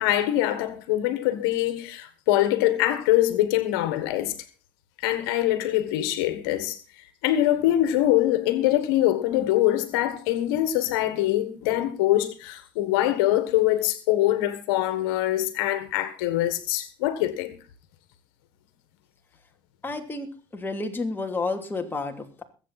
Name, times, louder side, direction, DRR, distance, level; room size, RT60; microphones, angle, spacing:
voice 1, 0.0-4.3 5.0-6.8 7.2-17.5, left 14 dB, 85° left, 1.5 m, -23 dB
voice 2, 19.8-22.4, left 3 dB, 20° left, 2.9 m, -31 dB
21.5 x 8.2 x 4.1 m
supercardioid pair, 90°, 12 cm